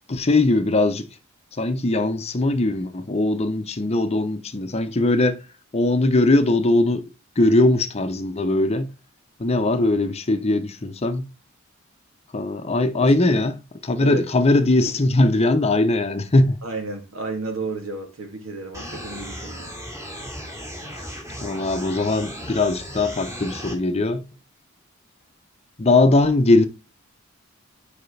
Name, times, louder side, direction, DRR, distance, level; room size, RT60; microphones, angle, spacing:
voice 1, 0.1-1.1 1.6-5.4 5.7-7.1 7.4-8.9 9.4-11.3 12.3-16.6 20.9-21.0 21.4-24.2 25.8-26.6, left 2 dB, 30° left, 0.7 m, -20 dB
voice 2, 16.6-19.7, right 3 dB, 85° right, 2.3 m, -32 dB
sound 1, 18.7-23.7, equal, 15° right, 2.5 m, -36 dB
9.4 x 5.0 x 3.3 m
head